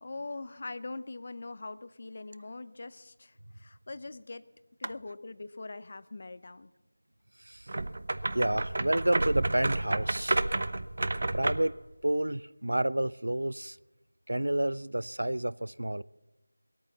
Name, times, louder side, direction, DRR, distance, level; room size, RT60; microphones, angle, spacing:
voice 1, 0.0-4.4 4.8-6.7, left 3 dB, 40° left, 0.6 m, -42 dB
voice 2, 7.4-7.7 8.3-10.4 11.3-13.8 14.3-16.0, right 1 dB, 75° right, 0.4 m, -30 dB
sound 1, 7.7-11.8, right 2 dB, 45° right, 0.8 m, -30 dB
20.5 x 8.8 x 7.1 m
figure-of-eight pair, 170°, 0 cm